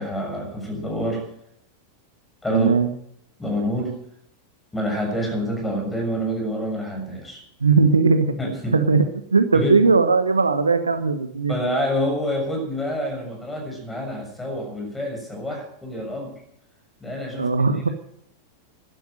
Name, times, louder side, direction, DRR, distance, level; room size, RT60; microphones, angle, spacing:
voice 1, 0.0-1.3 2.4-2.7 3.4-4.0 4.7-7.4 8.4-8.8 9.5-9.9 11.5-16.3 17.0-17.5, equal, 10° left, 2 dB, 6.6 m, -27 dB
voice 2, 2.5-2.9 7.6-8.3 8.7-9.1 9.3-11.6 17.4-17.9, right 4 dB, 75° right, 10 dB, 1.2 m, -18 dB
12.5 x 12.0 x 7.8 m, 0.70 s
figure-of-eight pair, 90°, 0 cm